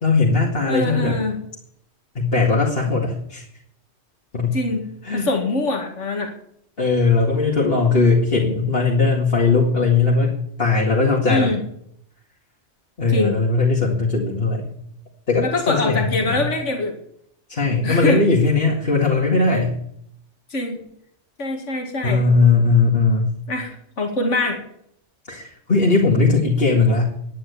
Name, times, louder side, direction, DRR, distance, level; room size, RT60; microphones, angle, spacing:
voice 1, 0.0-1.2 2.2-3.4 4.3-4.6 5.0-5.3 6.8-10.3 10.6-11.5 13.0-14.6 15.3-16.5 17.5-19.8 22.0-23.3 25.3-27.1, left 4 dB, 50° left, -3 dB, 2.4 m, -19 dB
voice 2, 0.7-1.4 4.5-6.3 11.3-11.6 13.1-13.4 15.4-17.0 17.8-18.3 20.5-20.8 21.4-22.2 23.5-24.6, left 2 dB, 80° left, 3 dB, 2.4 m, -23 dB
10.5 x 10.5 x 8.2 m, 0.70 s
omnidirectional pair, 1.2 m